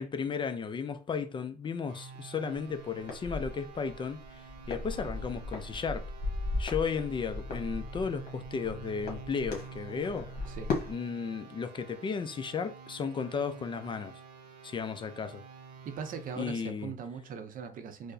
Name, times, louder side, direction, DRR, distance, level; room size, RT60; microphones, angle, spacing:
voice 1, 0.0-6.0 6.6-10.3 10.9-14.1 14.6-15.4 16.4-16.9, left 6 dB, 30° left, 0.4 m, -34 dB
sound 1, 1.9-16.4, right 5 dB, 85° right, 0.8 m, -49 dB
sound 2, 2.5-10.9, left 2 dB, 60° left, 1.1 m, -37 dB
voice 2, 15.9-18.1, right 6 dB, 55° right, 0.5 m, -40 dB
4.6 x 2.0 x 2.6 m
cardioid pair, 110°, 17 cm